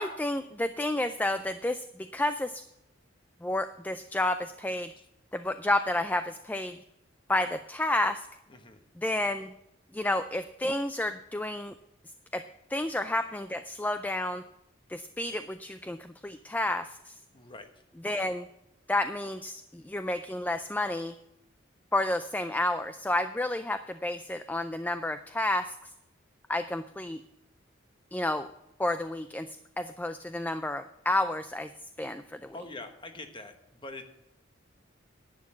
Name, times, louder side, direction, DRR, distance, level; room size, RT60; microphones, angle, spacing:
voice 1, 0.0-2.6 3.4-4.9 5.3-6.8 7.3-8.3 9.0-9.5 9.9-11.7 12.3-12.4 12.7-14.4 14.9-17.2 18.0-18.5 18.9-21.1 21.9-25.8 26.5-27.2 28.1-28.5 28.8-29.5 29.8-31.7 32.0-32.5, left 1 dB, 10° left, 10 dB, 0.3 m, -30 dB
voice 2, 8.5-8.8 17.3-17.8 32.5-34.1, left 2 dB, 25° left, 7 dB, 1.2 m, -44 dB
11.0 x 8.7 x 7.3 m, 0.86 s
head